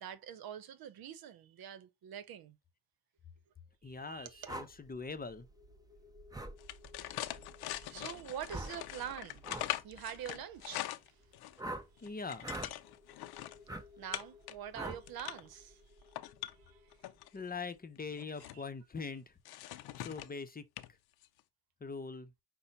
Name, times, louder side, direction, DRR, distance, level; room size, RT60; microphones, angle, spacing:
voice 1, 0.0-2.6 3.8-4.6 7.6-11.3 11.9-12.1 14.0-15.8 16.5-17.0 18.5-18.6, right 9 dB, 70° right, 0.8 m, -46 dB
sound 1, 3.7-18.8, left 1 dB, 45° right, 1.4 m, -60 dB
voice 2, 3.8-5.5 12.0-12.6 17.3-19.4 20.0-20.6 21.8-22.3, left 4 dB, 25° left, 0.7 m, -42 dB
sound 2, 4.5-4.7 6.3-6.5 8.5-8.8 9.4-9.7 11.6-11.9 12.4-12.7 13.7-13.8 14.7-15.0, right 2 dB, 10° right, 0.8 m, -41 dB
sound 3, 6.6-11.6 12.0-13.6 14.1-14.5 14.9-15.5 16.0-17.3 18.0-18.6 19.5-20.4 20.8-20.9 21.2-21.4, left 14 dB, 85° left, 0.6 m, -42 dB
5.5 x 2.2 x 3.9 m
cardioid pair, 80°, 37 cm